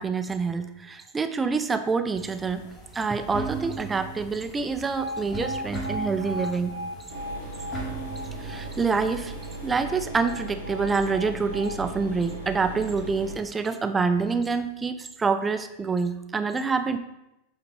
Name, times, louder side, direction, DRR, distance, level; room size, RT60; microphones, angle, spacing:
voice 1, 0.0-2.7 2.9-6.7 8.4-9.4 9.6-17.0, right 4 dB, 15° right, 9 dB, 0.5 m, -27 dB
sound 1, 2.1-9.8, right 3 dB, 30° left, 2.7 m, -38 dB
Alarm, 5.0-13.0, left 1 dB, 90° right, 0.6 m, -38 dB
sound 2, 7.1-13.3, right 2 dB, 85° left, 2.6 m, -38 dB
8.4 x 3.9 x 4.2 m, 0.90 s
figure-of-eight pair, 90°, 0 cm